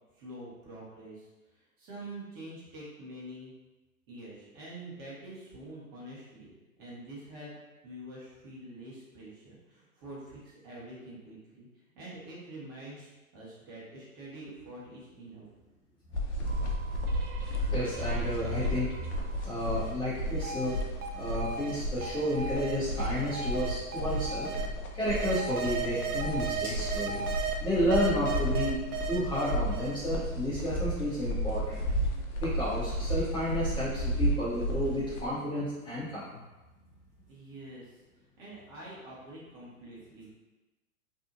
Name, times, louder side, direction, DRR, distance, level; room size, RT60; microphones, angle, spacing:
voice 1, 0.1-3.5 4.1-7.5 7.8-11.7 11.9-15.5 37.3-38.0 38.4-40.3, right 1 dB, 35° right, -7 dB, 1.1 m, -46 dB
sound 1, 16.1-35.3, equal, 55° left, 0.6 m, -33 dB
sound 2, 16.5-19.3 19.7-24.7 25.1-27.5 27.9-30.2, right 6 dB, 85° right, 0.5 m, -37 dB
voice 2, 17.7-19.0 19.4-20.8 21.1-24.5 24.9-28.8 29.1-31.8 32.4-36.4, left 1 dB, 10° left, -12 dB, 0.7 m, -31 dB
2.7 x 2.4 x 2.5 m, 1.1 s
hypercardioid pair, 115°, 44 cm